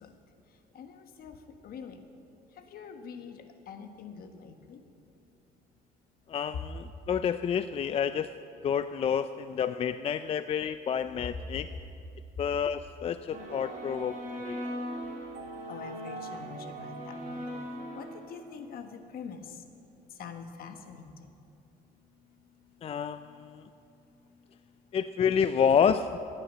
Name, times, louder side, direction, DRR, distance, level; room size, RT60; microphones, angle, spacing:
voice 1, 1.6-2.0 2.7-3.4 3.7-4.8 15.7-16.9 17.3-17.4 18.0-18.9 19.1-19.4 20.2-21.1, left 6 dB, 60° left, 6 dB, 1.4 m, -44 dB
voice 2, 6.3-8.3 8.6-11.7 12.4-14.6 22.8-23.6 24.9-26.2, left 7 dB, 35° left, 11 dB, 0.4 m, -29 dB
sound 1, 13.3-18.5, right 1 dB, 50° right, 3.1 m, -39 dB
15.5 x 9.8 x 7.3 m, 2.7 s
cardioid pair, 110°, 17 cm